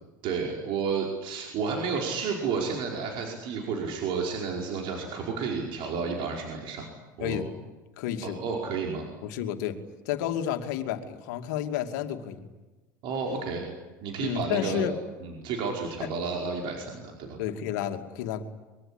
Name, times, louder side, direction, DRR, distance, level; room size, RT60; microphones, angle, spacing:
voice 1, 0.2-6.9 7.2-7.4 8.2-9.1 13.0-13.6 14.0-14.9 15.2-17.4, right 5 dB, 55° right, 0 dB, 5.0 m, -31 dB
voice 2, 7.2-7.5 8.0-8.4 9.2-9.8 10.0-12.5 14.2-14.9 16.0-16.1 17.4-18.4, left 10 dB, 70° left, 6 dB, 2.6 m, -31 dB
24.0 x 23.0 x 10.0 m, 1.2 s
hypercardioid pair, 75°, 10 cm